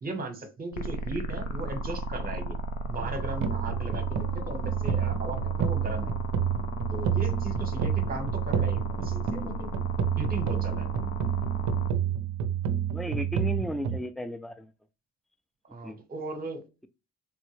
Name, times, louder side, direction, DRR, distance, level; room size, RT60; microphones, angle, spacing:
voice 1, 0.0-2.6 2.9-6.1 6.9-9.7 10.2-10.9 15.7-16.7, right 2 dB, 30° right, 7 dB, 0.9 m, -37 dB
sound 1, 0.7-11.9, equal, 70° left, 0.6 m, -35 dB
sound 2, 2.9-14.0, right 8 dB, 70° right, 0.5 m, -29 dB
voice 2, 12.9-14.7 15.8-16.0, equal, ahead, 9 dB, 0.3 m, -34 dB
3.5 x 2.1 x 3.0 m, 0.29 s
cardioid pair, 90°, 30 cm